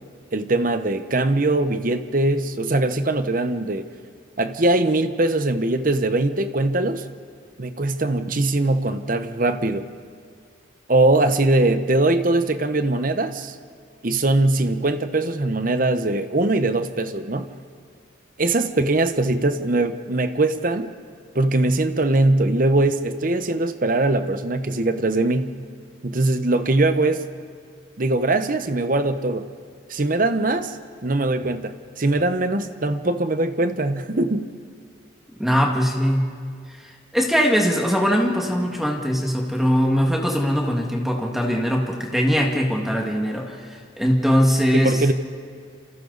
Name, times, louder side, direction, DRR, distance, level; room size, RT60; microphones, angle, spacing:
voice 1, 0.3-3.9 4.4-7.1 7.6-9.9 10.9-13.6 14.0-17.5 18.4-20.9 21.3-25.5 26.0-27.2 28.0-29.5 29.9-30.8 31.0-34.5 44.7-45.1, right 2 dB, 45° right, 9 dB, 1.0 m, -21 dB
voice 2, 35.4-36.3 36.8-45.0, equal, ahead, 0 dB, 1.9 m, -21 dB
28.0 x 28.0 x 4.1 m, 2.1 s
head